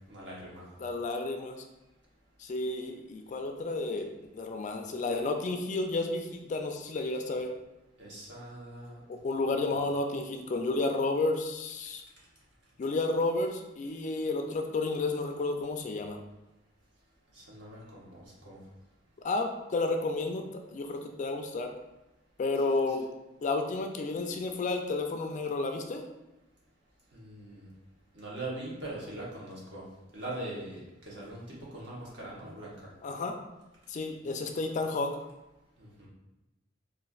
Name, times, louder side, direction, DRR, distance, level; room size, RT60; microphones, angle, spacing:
voice 1, 0.1-0.7 8.0-9.0 9.7-9.8 17.3-18.6 27.1-27.7 28.1-29.8 30.1-32.7 35.8-36.1, right 1 dB, 65° right, -5 dB, 1.1 m, -42 dB
voice 2, 0.8-1.6 2.4-4.1 4.3-7.5 9.1-12.0 12.8-16.2 19.2-20.4 20.7-21.7 22.4-23.1 23.4-26.0 33.0-33.4 33.9-35.1, left 3 dB, 40° left, 4 dB, 0.3 m, -31 dB
4.1 x 2.5 x 2.4 m, 0.98 s
head